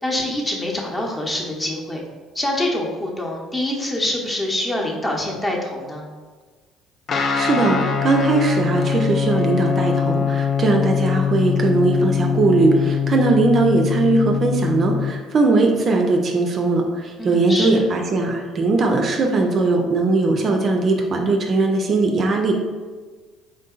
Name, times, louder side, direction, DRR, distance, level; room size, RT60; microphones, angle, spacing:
voice 1, 0.0-2.0 2.3-6.0 17.2-17.8, left 1 dB, 20° left, -1 dB, 0.8 m, -25 dB
Guitar, 7.1-15.1, left 7 dB, 45° left, 0.3 m, -22 dB
voice 2, 7.1-22.5, right 3 dB, 45° right, 2 dB, 0.4 m, -19 dB
3.6 x 2.6 x 2.4 m, 1.4 s
hypercardioid pair, 55°, 0 cm